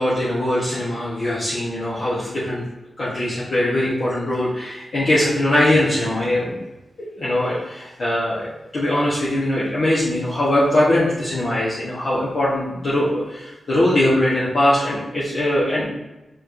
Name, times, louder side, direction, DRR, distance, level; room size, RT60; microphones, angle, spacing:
voice 1, 0.0-2.6 3.0-6.6 7.0-15.9, left 1 dB, 65° left, -9 dB, 1.2 m, -21 dB
4.5 x 4.2 x 2.6 m, 1.0 s
wide cardioid pair, 105°, 0 cm